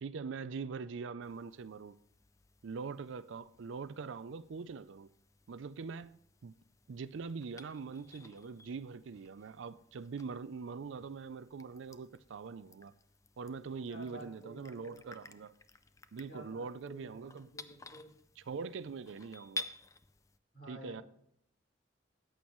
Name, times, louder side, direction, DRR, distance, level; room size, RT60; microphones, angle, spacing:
voice 1, 0.0-2.0 2.6-5.1 5.5-6.6 6.9-12.9 13.4-15.5 16.1-17.5 18.4-19.7 20.7-21.0, right 5 dB, 80° right, 0.4 m, -43 dB
sound 1, 1.2-20.4, left 2 dB, 15° left, 0.4 m, -53 dB
voice 2, 13.9-15.3 16.3-18.1 20.5-21.0, right 1 dB, 50° left, 5.2 m, -52 dB
14.0 x 8.8 x 3.1 m
head